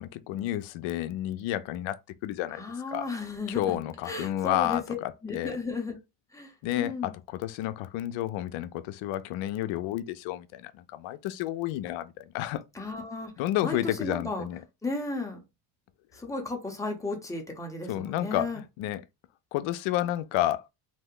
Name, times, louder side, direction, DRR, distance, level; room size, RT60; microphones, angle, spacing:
voice 1, 0.0-2.0 2.2-2.6 2.9-3.1 3.5-5.6 6.6-12.6 13.4-14.6 17.9-19.0 19.5-20.7, left 14 dB, 75° left, 0.5 m, -31 dB
voice 2, 2.5-3.8 4.0-6.0 6.3-7.1 12.7-13.3 13.6-14.5 14.8-15.4 16.1-18.6, left 3 dB, 5° left, 0.7 m, -34 dB
2.7 x 2.2 x 3.6 m
cardioid pair, 140°, 47 cm